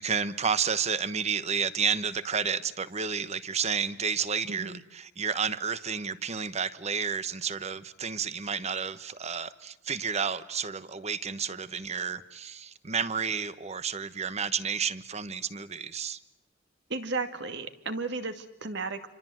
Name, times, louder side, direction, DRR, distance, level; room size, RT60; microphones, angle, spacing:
voice 1, 0.0-16.2, right 6 dB, 35° right, 14 dB, 1.1 m, -31 dB
voice 2, 4.5-4.8 16.9-19.1, right 3 dB, 60° right, 8 dB, 2.1 m, -34 dB
28.0 x 26.0 x 7.8 m, 0.88 s
head